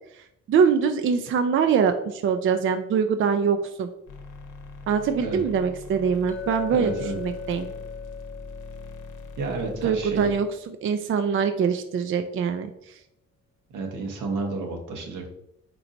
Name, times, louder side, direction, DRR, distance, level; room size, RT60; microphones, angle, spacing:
voice 1, 0.1-3.9 4.9-7.7 9.8-10.5 10.8-12.9, right 6 dB, 45° right, 8 dB, 0.4 m, -23 dB
sound 1, 4.1-10.4, left 3 dB, 80° left, 0.9 m, -42 dB
Chink clink, 6.3-10.7, left 6 dB, 25° left, 0.7 m, -39 dB
voice 2, 6.7-7.1 9.4-10.3 13.7-15.3, right 3 dB, 80° right, 3 dB, 1.1 m, -30 dB
4.5 x 3.9 x 2.6 m, 0.78 s
cardioid pair, 90°, 30 cm